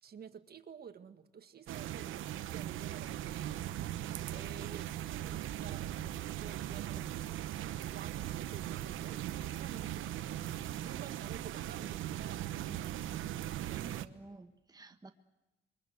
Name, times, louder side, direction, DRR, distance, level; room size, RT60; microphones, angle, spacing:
voice 1, 0.0-7.0 7.6-10.4 10.8-12.5 13.7-14.4, right 7 dB, 50° right, 9 dB, 1.9 m, -52 dB
sound 1, 1.7-14.1, right 12 dB, 85° right, 1.1 m, -39 dB
voice 2, 13.7-15.1, right 2 dB, 20° right, 6 dB, 1.5 m, -53 dB
28.5 x 23.5 x 8.1 m, 1.0 s
cardioid pair, 90°, 20 cm